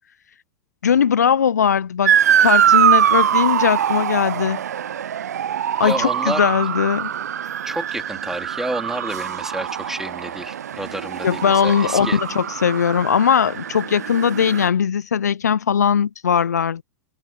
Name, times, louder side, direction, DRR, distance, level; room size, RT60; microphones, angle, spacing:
voice 1, 0.8-4.6 5.8-7.1 11.2-16.8, left 7 dB, 75° left, 0.9 m, -19 dB
Motor vehicle (road) / Siren, 2.1-14.7, right 9 dB, 70° right, 0.8 m, -22 dB
voice 2, 5.8-6.5 7.6-12.2, right 1 dB, 5° right, 4.1 m, -30 dB
figure-of-eight pair, 95°, 9 cm